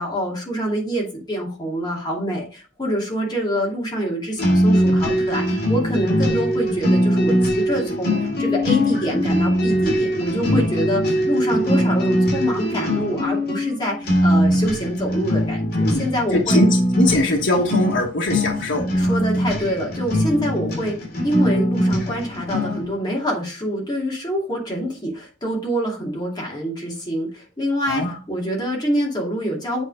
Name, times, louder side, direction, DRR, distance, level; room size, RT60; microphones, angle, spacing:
voice 1, 0.0-16.6 19.0-29.8, equal, 20° left, -2 dB, 2.6 m, -25 dB
sound 1, 4.4-22.9, equal, 50° left, 3.0 m, -21 dB
voice 2, 15.8-19.2 27.9-28.2, left 1 dB, 75° left, 0 dB, 1.3 m, -22 dB
8.3 x 4.3 x 4.9 m, 0.36 s
head